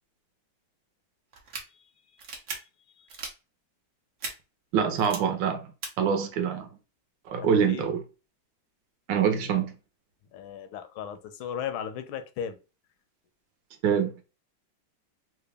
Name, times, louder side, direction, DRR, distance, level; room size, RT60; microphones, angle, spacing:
sound 1, 1.3-1.6 2.2-2.6 3.1-3.3 4.2-4.3 5.0-5.2 5.8-5.9, right 4 dB, 55° right, 0.9 m, -36 dB
voice 1, 4.7-5.7 6.0-6.7 7.3-8.0 9.1-9.7 13.8-14.1, right 7 dB, 75° right, 1.3 m, -25 dB
voice 2, 7.5-7.8 10.3-12.6, left 8 dB, 85° left, 1.4 m, -36 dB
3.9 x 2.2 x 3.3 m
omnidirectional pair, 2.2 m